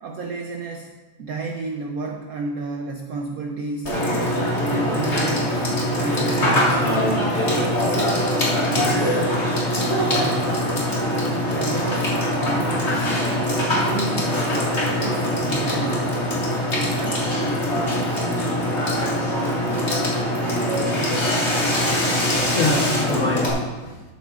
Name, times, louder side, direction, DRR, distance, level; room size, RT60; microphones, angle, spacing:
voice 1, 0.0-0.9 1.2-3.9 4.6-5.5 5.9-7.1 7.5-9.3 10.1-10.7 11.5-13.1 13.5-14.4 14.8-16.3 16.7-17.3, right 3 dB, 80° right, 2 dB, 0.8 m, -31 dB
Water / Water tap faucet / Sink (filling or washing), 3.8-23.5, equal, 35° left, 1.9 m, -22 dB
voice 2, 21.8-24.0, left 2 dB, 50° left, -1 dB, 1.1 m, -27 dB
13.0 x 8.2 x 2.4 m, 1.2 s
omnidirectional pair, 2.3 m